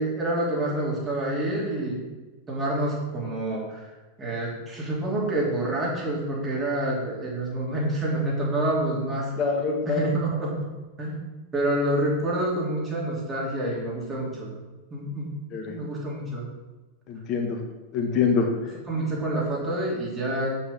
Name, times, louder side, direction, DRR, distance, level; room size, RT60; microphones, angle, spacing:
voice 1, 0.0-2.0 2.5-3.9 4.2-9.3 9.9-10.6 11.0-11.3 11.5-14.5 14.9-15.4 15.7-16.5 18.9-20.5, right 1 dB, 20° right, -4 dB, 3.0 m, -27 dB
voice 2, 9.4-10.1 15.5-15.8 17.1-17.6 17.9-18.7, left 5 dB, 35° left, 2 dB, 1.6 m, -25 dB
8.7 x 7.2 x 3.7 m, 1.2 s
figure-of-eight pair, 90°, 0 cm